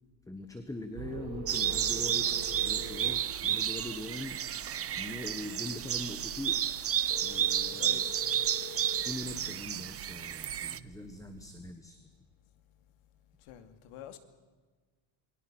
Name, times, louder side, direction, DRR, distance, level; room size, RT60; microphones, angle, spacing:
voice 1, 0.3-4.4 4.9-6.6 7.2-8.0 9.0-12.1, left 2 dB, 5° left, 1.3 m, -42 dB
sound 1, 0.9-11.7, right 9 dB, 85° right, 1.7 m, -48 dB
sound 2, 1.1-3.1 7.1-9.1, left 7 dB, 30° left, 0.8 m, -46 dB
sound 3, 1.5-10.8, right 10 dB, 30° right, 0.7 m, -32 dB
voice 2, 7.8-8.1 13.4-14.2, left 11 dB, 85° left, 2.7 m, -47 dB
28.0 x 22.0 x 6.2 m
cardioid pair, 150°, 49 cm